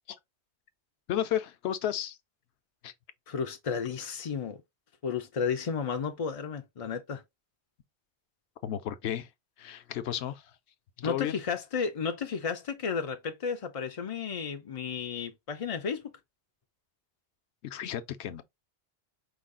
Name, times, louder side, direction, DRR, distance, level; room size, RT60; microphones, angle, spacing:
voice 1, 1.1-2.2 2.8-2.9 8.6-9.3 9.6-10.4 11.0-11.4 17.6-18.4, left 11 dB, 75° left, 0.9 m, -33 dB
voice 2, 3.3-4.6 5.0-7.2 11.0-16.1, left 6 dB, 50° left, 0.4 m, -33 dB
5.0 x 2.3 x 3.7 m
omnidirectional pair, 1.2 m